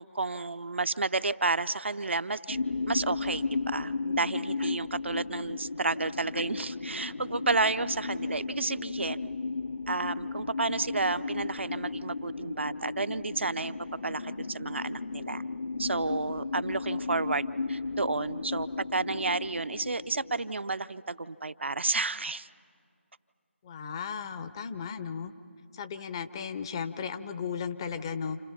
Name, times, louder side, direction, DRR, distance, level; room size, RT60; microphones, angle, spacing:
voice 1, 0.0-2.6 2.9-9.2 9.9-13.7 14.0-15.4 15.8-22.5, right 3 dB, 65° right, 12 dB, 0.6 m, -31 dB
sound 1, 2.5-20.5, left 4 dB, 70° left, 0.5 m, -35 dB
voice 2, 23.6-25.3 25.7-28.4, left 6 dB, 20° left, 10 dB, 0.6 m, -35 dB
29.5 x 28.5 x 5.8 m, 2.4 s
figure-of-eight pair, 155°, 7 cm